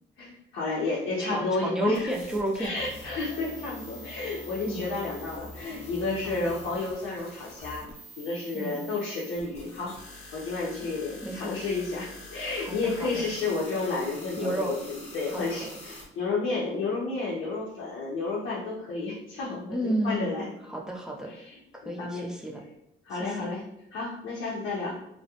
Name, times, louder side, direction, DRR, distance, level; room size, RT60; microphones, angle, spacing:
voice 1, 0.2-2.1 2.6-9.9 10.3-20.5 21.3-22.3 23.0-23.6 23.9-25.0, left 3 dB, 80° left, -5 dB, 0.6 m, -31 dB
voice 2, 1.3-2.7 4.7-4.9 6.2-6.4 8.5-8.8 11.2-11.6 12.5-13.2 14.4-14.7 15.3-15.7 19.7-21.3 21.7-22.6 23.1-23.5, right 1 dB, 5° right, -1 dB, 0.5 m, -32 dB
sound 1, 1.9-16.1, left 1 dB, 35° left, 0.8 m, -45 dB
2.3 x 2.1 x 2.8 m, 0.83 s
cardioid pair, 90°, 20 cm